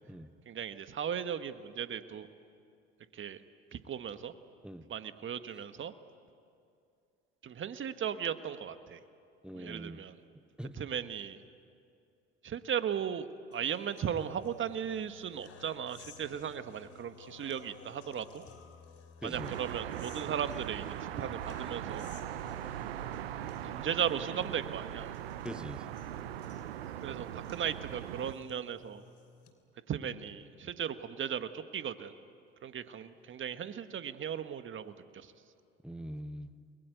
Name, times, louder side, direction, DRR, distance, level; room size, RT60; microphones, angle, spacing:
voice 1, 0.5-2.3 3.1-3.4 3.7-4.3 4.9-5.9 7.4-9.0 9.5-10.1 10.8-11.4 12.4-18.4 19.2-22.1 23.6-25.1 27.0-29.0 29.9-32.1 32.6-35.3, right 8 dB, 40° right, 10 dB, 1.6 m, -37 dB
voice 2, 9.4-10.0 10.6-10.8 19.2-19.5 25.4-25.9 35.8-36.5, equal, 5° right, 11 dB, 1.4 m, -42 dB
sound 1, 13.5-29.5, left 6 dB, 50° left, 3.2 m, -55 dB
sound 2, 19.3-28.3, right 12 dB, 90° right, 0.8 m, -40 dB
29.5 x 21.5 x 9.3 m, 2.5 s
hypercardioid pair, 65°, 29 cm